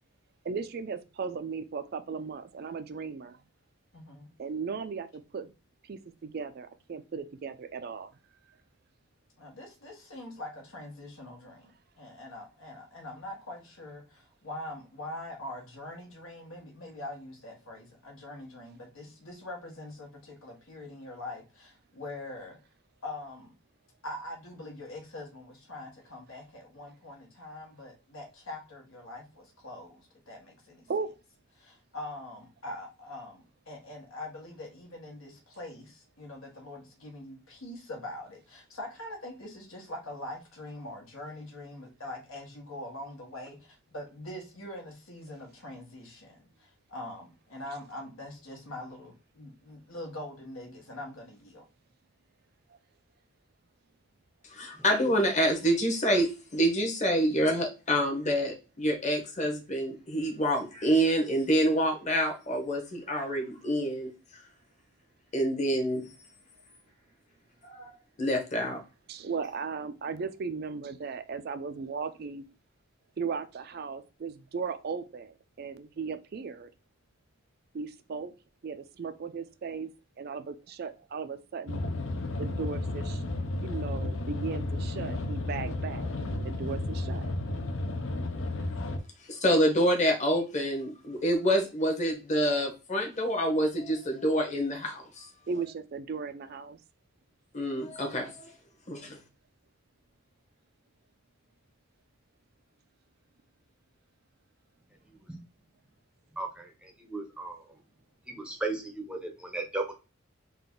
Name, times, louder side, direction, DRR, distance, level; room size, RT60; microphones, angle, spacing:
voice 1, 0.4-3.4 4.4-5.5 5.8-8.1 30.9-31.1 45.3-45.4 52.7-52.8 69.1-72.4 73.2-76.7 77.7-78.3 78.6-79.9 80.2-81.8 82.4-83.2 83.6-87.3 95.5-96.8, right 5 dB, 45° right, 10 dB, 0.4 m, -37 dB
voice 2, 3.9-4.3 9.4-11.7 12.0-14.0 14.4-22.6 23.0-23.5 24.0-30.0 30.3-30.8 31.6-43.6 43.9-46.3 46.9-51.6, left 1 dB, 85° left, 1 dB, 1.5 m, -43 dB
voice 3, 54.5-64.1 65.3-66.1 67.6-67.9 68.2-68.8 89.3-95.3 97.5-98.5 98.9-99.2, equal, 35° left, 3 dB, 1.0 m, -27 dB
sound 1, 81.7-89.0, left 2 dB, 65° left, 0.6 m, -33 dB
voice 4, 106.4-107.6 108.3-109.9, right 2 dB, 5° right, 2 dB, 0.6 m, -36 dB
3.9 x 2.5 x 3.7 m, 0.30 s
head